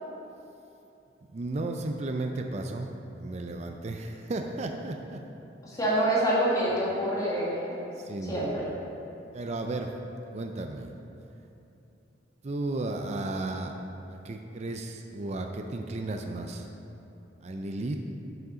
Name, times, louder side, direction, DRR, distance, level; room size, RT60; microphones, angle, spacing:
voice 1, 1.3-5.2 8.0-8.6 9.3-9.9 10.3-10.9 12.4-13.7 14.1-16.7 17.4-18.0, right 2 dB, 35° right, 4 dB, 0.4 m, -34 dB
voice 2, 5.6-7.8 8.3-8.6, right 1 dB, 20° left, -7 dB, 1.7 m, -26 dB
7.3 x 6.5 x 5.0 m, 2.8 s
head